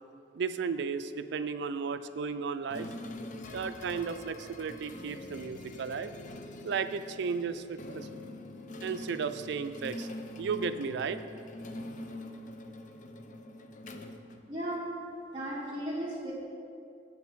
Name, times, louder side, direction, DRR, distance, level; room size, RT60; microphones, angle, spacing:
voice 1, 0.3-2.9 3.5-6.1 6.6-8.1 8.8-10.1 10.4-11.2, right 5 dB, 65° right, 11 dB, 0.4 m, -34 dB
sound 1, 2.7-15.0, left 1 dB, 45° left, 0.5 m, -44 dB
voice 2, 14.5-14.8 15.3-16.3, right 1 dB, 25° right, -7 dB, 1.3 m, -35 dB
8.0 x 7.2 x 4.6 m, 2.5 s
head